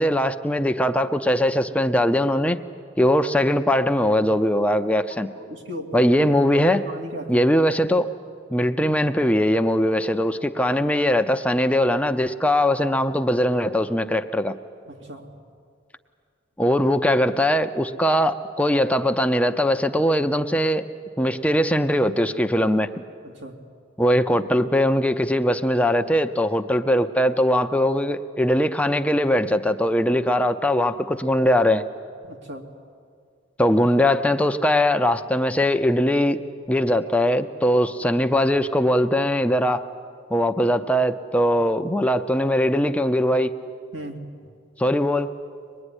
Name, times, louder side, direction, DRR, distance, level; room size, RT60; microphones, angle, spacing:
voice 1, 0.0-2.6 3.0-5.3 5.9-6.8 7.3-8.1 8.5-14.6 16.6-20.8 21.2-22.9 24.0-31.8 33.6-36.4 36.7-39.9 40.3-43.6 44.8-45.3, equal, 5° left, 7 dB, 0.6 m, -21 dB
voice 2, 5.4-6.1 6.5-7.4 14.9-15.3 23.2-23.6 32.3-32.6 43.9-44.2, right 1 dB, 85° right, 1 dB, 2.9 m, -36 dB
24.0 x 20.5 x 9.9 m, 2.2 s
head